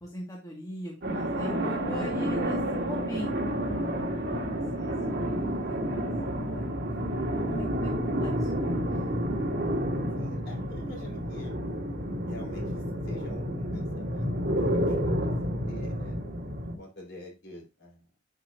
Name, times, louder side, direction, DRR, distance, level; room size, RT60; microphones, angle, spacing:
voice 1, 0.0-4.2 4.8-6.1 6.4-6.7 7.3-8.7, equal, 20° left, -2 dB, 1.8 m, -40 dB
sound 1, 1.0-16.8, equal, 55° right, 1.8 m, -30 dB
voice 2, 5.0-5.5 10.1-11.5 12.3-12.6 13.1-15.3 15.7-16.2 16.8-18.0, left 1 dB, 60° left, -1 dB, 3.9 m, -46 dB
10.5 x 5.6 x 2.6 m, 0.26 s
head